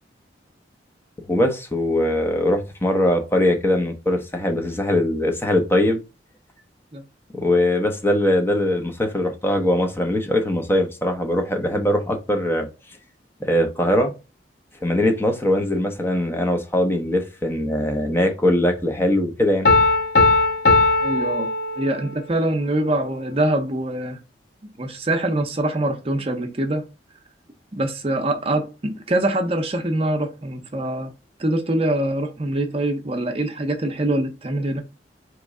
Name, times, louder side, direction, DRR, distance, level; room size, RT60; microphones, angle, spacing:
voice 1, 1.3-6.0 7.3-12.7 13.4-14.1 14.8-19.7, left 1 dB, 15° left, 0.7 m, -21 dB
Piano, 19.7-22.2, left 3 dB, 60° left, 0.9 m, -18 dB
voice 2, 21.0-21.5 21.8-24.2 24.8-26.9 27.7-31.1 31.4-34.8, right 1 dB, 35° right, 0.7 m, -24 dB
4.4 x 3.1 x 3.6 m
head